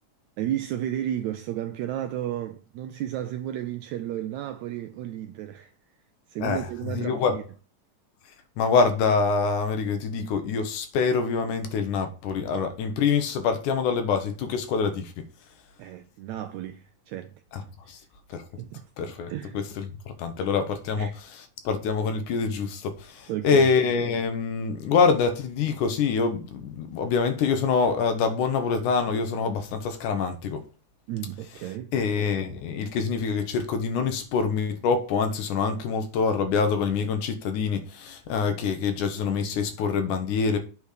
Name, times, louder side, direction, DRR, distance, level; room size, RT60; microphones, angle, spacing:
voice 1, 0.4-5.7 6.3-7.4 15.8-17.3 17.8-18.1 18.6-18.8 19.3-19.6 21.0-21.2 23.3-23.7 31.1-31.9, right 12 dB, 85° right, 1.6 m, -33 dB
voice 2, 7.0-7.4 8.6-15.3 17.5-17.6 17.9-18.0 18.3-18.4 19.0-21.1 21.6-30.7 31.9-40.6, left 5 dB, 75° left, 2.3 m, -25 dB
8.3 x 4.2 x 6.6 m
omnidirectional pair, 3.8 m